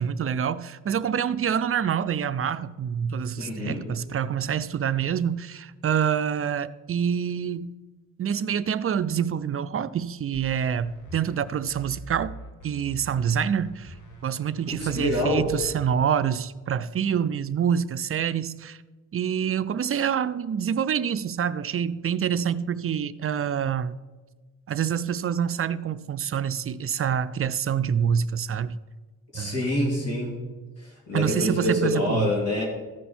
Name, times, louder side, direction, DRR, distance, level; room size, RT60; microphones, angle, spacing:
voice 1, 0.0-7.7 8.2-12.3 12.6-13.9 14.2-18.8 19.1-23.9 24.7-28.8 29.3-29.7 31.1-32.3, right 8 dB, 45° right, 0.4 m, -26 dB
voice 2, 3.4-3.8 14.8-15.5 29.3-30.4 31.1-32.6, left 1 dB, 50° left, 2.6 m, -26 dB
sound 1, 10.3-15.9, right 2 dB, 65° left, 1.6 m, -43 dB
14.5 x 5.6 x 4.3 m
cardioid pair, 85°, 33 cm